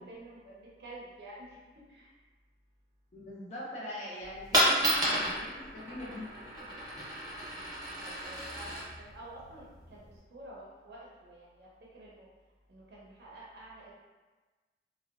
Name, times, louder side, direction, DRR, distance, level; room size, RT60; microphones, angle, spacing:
voice 1, 0.1-1.6 1.9-2.1 7.4-7.6 8.0-10.1 10.3-11.7 11.9-12.3 12.7-13.9, right 1 dB, 65° right, -5 dB, 0.5 m, -49 dB
voice 2, 3.1-6.3, left 1 dB, 40° left, -7 dB, 0.4 m, -42 dB
Coin (dropping), 4.2-10.2, equal, 25° right, 0.7 m, -32 dB
2.7 x 2.0 x 2.4 m, 1.3 s
head